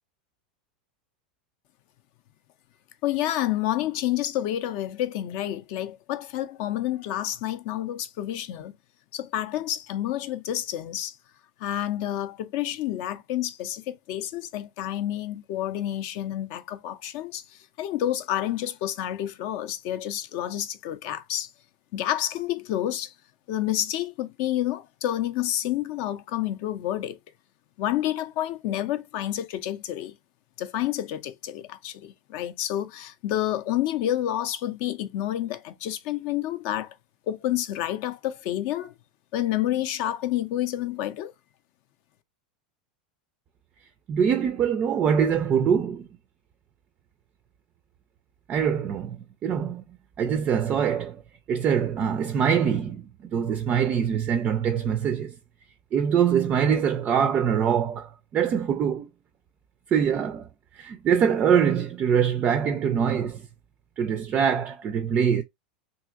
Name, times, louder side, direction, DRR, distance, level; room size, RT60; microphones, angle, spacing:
voice 1, 3.0-8.7 9.1-11.2 11.6-21.5 21.9-23.1 23.5-27.2 27.8-30.2 30.6-37.0 37.3-38.9 39.3-41.3, left 12 dB, 50° left, 0.4 m, -29 dB
voice 2, 44.1-46.1 48.5-49.8 50.2-51.2 51.5-55.3 55.9-59.1 59.9-60.5 60.7-63.4 64.0-65.4, right 7 dB, 30° right, 0.4 m, -24 dB
2.7 x 2.7 x 2.3 m
figure-of-eight pair, 85°, 5 cm